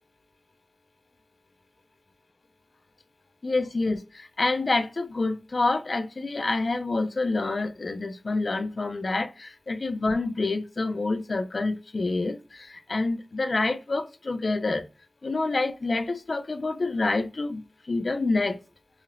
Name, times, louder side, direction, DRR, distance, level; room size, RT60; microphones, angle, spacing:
voice 1, 3.4-14.8 15.2-17.6 17.9-18.6, left 3 dB, 70° left, 0.3 m, -27 dB
3.1 x 2.8 x 2.4 m
cardioid pair, 45°, 0 cm